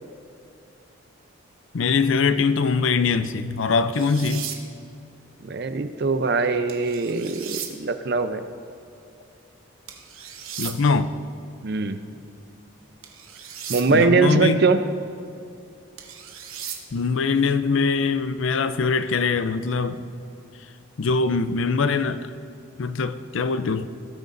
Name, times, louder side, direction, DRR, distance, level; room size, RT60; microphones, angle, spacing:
voice 1, 1.7-4.5 10.6-11.1 13.9-14.6 16.9-20.0 21.0-22.2 22.8-23.9, left 4 dB, 65° left, 0.5 m, -22 dB
sound 1, 4.0-4.6 6.7-7.7 9.9-10.7 13.0-13.9 16.0-16.8, right 9 dB, 80° right, 1.1 m, -36 dB
voice 2, 5.4-8.4 11.6-12.0 13.7-14.8, right 4 dB, 50° right, 0.5 m, -22 dB
18.0 x 9.2 x 2.6 m
head